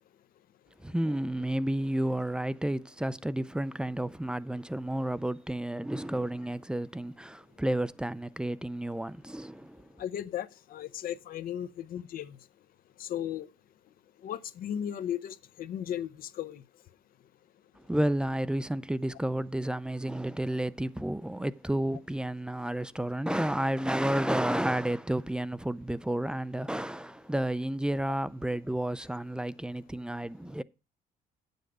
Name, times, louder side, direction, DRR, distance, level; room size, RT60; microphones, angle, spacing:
voice 1, 0.8-9.9 17.9-30.6, right 1 dB, 5° right, 0.4 m, -31 dB
voice 2, 10.0-12.4 13.0-13.5 14.2-16.6, left 10 dB, 60° left, 0.6 m, -36 dB
9.2 x 7.9 x 4.8 m
cardioid pair, 110°, 17 cm